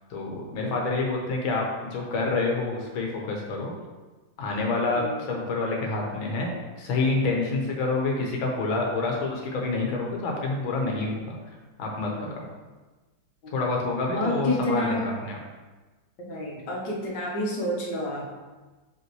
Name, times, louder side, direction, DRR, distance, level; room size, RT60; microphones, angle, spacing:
voice 1, 0.1-1.6 1.9-3.7 4.4-6.5 6.8-11.3 11.8-12.4 13.5-15.4, left 3 dB, 85° left, -1 dB, 1.9 m, -27 dB
voice 2, 4.9-5.3 12.2-12.4 13.4-13.5 14.1-15.0 16.2-18.3, left 1 dB, 65° left, -2 dB, 1.8 m, -29 dB
6.0 x 5.4 x 3.1 m, 1.2 s
omnidirectional pair, 2.1 m